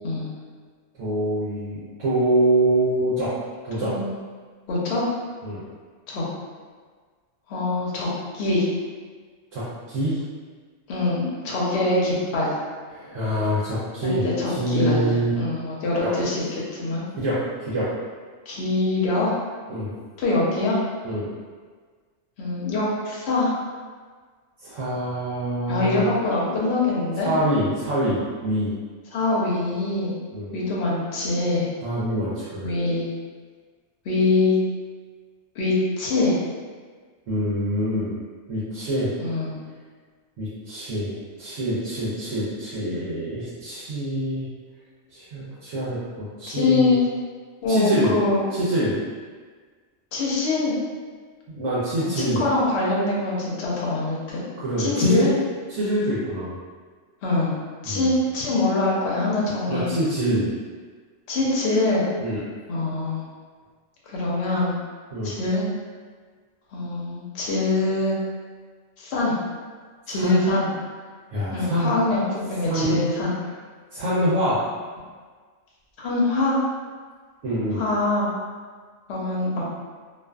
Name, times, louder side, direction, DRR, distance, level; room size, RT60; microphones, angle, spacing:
voice 1, 1.0-3.3 3.6-3.9 5.4-5.6 9.5-10.2 12.9-15.3 16.0-16.1 17.1-17.9 19.7-19.9 21.0-21.3 24.6-26.0 27.2-28.7 30.3-30.5 31.8-32.7 37.3-38.1 38.5-39.1 40.4-44.5 45.1-46.9 47.7-48.1 48.5-49.0 51.5-52.4 54.6-55.3 55.7-56.6 57.9-58.1 59.7-60.5 62.2-62.4 65.1-65.4 70.1-70.4 71.3-71.9 72.6-73.0 73.9-74.6 77.4-77.8, right 1 dB, 80° right, -11 dB, 1.0 m, -25 dB
voice 2, 3.8-4.1 4.7-5.1 6.1-6.3 7.5-8.1 8.3-8.7 10.9-12.5 14.0-16.4 16.7-17.0 18.5-19.3 20.2-20.8 22.4-23.5 25.7-27.3 29.1-30.1 30.5-31.7 32.6-33.1 34.0-34.6 35.6-36.4 39.2-39.6 46.5-47.0 47.6-48.4 50.1-50.8 51.9-54.4 54.8-55.3 57.2-59.9 61.3-62.0 62.7-63.2 64.1-64.8 65.2-65.7 66.7-68.2 69.0-69.4 70.1-70.7 71.5-73.3 76.0-76.6 77.7-78.3 79.1-79.6, left 2 dB, 65° left, -5 dB, 0.8 m, -24 dB
2.4 x 2.4 x 2.2 m, 1.6 s
omnidirectional pair, 1.3 m